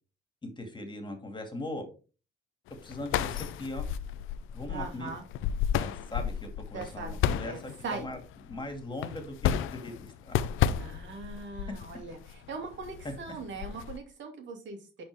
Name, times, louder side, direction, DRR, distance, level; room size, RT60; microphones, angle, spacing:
voice 1, 0.4-1.9 2.8-3.9 4.5-5.1 5.8-8.2 8.5-10.4, left 1 dB, 25° left, 5 dB, 2.3 m, -40 dB
sound 1, 2.7-14.0, left 10 dB, 90° left, 0.6 m, -33 dB
voice 2, 4.7-5.2 6.7-7.2 7.5-8.1 10.8-15.0, right 4 dB, 70° right, 4 dB, 2.2 m, -40 dB
10.0 x 4.4 x 3.5 m, 0.34 s
cardioid pair, 90°, 20 cm